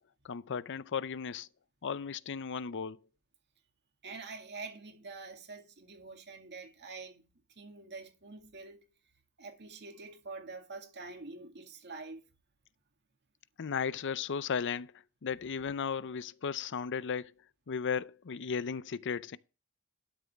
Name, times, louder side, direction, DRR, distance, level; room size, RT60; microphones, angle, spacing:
voice 1, 0.2-1.5 1.8-3.0 13.6-14.9 15.2-17.3 17.7-19.4, left 6 dB, 55° left, 0.5 m, -35 dB
voice 2, 4.0-7.3 7.6-8.8 9.4-12.2, right 3 dB, 50° right, 2.1 m, -46 dB
12.5 x 6.9 x 3.5 m
head